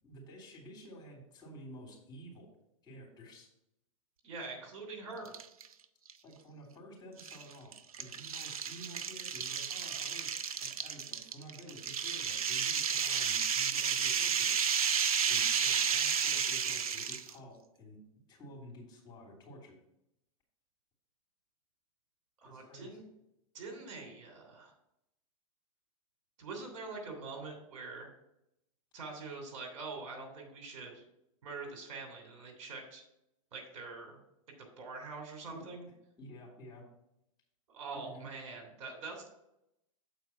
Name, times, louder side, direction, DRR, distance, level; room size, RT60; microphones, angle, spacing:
voice 1, 0.0-2.5 2.8-3.5 6.2-14.7 15.3-18.0 18.3-19.8 22.4-23.0 35.5-35.6 36.2-36.8 37.9-38.3, equal, 25° left, -1 dB, 3.3 m, -51 dB
voice 2, 4.2-5.4 22.4-23.0 23.5-24.7 26.4-28.1 28.9-31.0 31.4-33.0 33.5-34.2 34.6-35.9 37.7-39.3, right 3 dB, 65° right, 2 dB, 3.1 m, -44 dB
sound 1, 5.2-5.7 6.1-6.2 7.2-17.3, right 7 dB, 85° right, 0.6 m, -32 dB
8.2 x 4.6 x 5.8 m, 0.83 s
hypercardioid pair, 110°, 18 cm